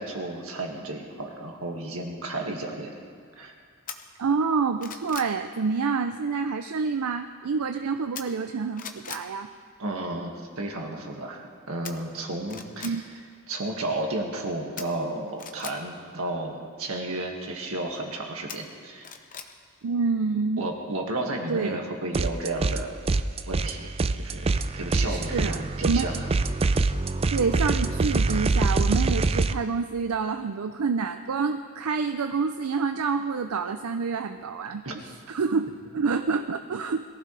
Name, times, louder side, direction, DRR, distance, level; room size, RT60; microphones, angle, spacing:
voice 1, 0.0-2.9 3.4-3.5 9.8-13.1 13.5-19.1 20.6-23.0 23.5-26.3 34.8-35.0, right 2 dB, 70° right, 1 dB, 2.0 m, -33 dB
sound 1, 3.9-4.0 4.5-5.3 8.1-8.5 8.8-9.3 11.8-11.9 12.4-12.9 14.8-15.7 18.5-19.5 19.9-20.0, left 7 dB, 40° left, 0.9 m, -39 dB
voice 2, 4.2-9.5 12.8-13.0 19.8-20.7 21.5-21.8 25.1-26.1 27.3-37.0, right 5 dB, 85° right, 7 dB, 0.5 m, -27 dB
sound 2, 22.1-22.8 23.1-29.5, right 3 dB, 25° right, 0.4 m, -25 dB
22.0 x 15.0 x 3.3 m, 2.1 s
head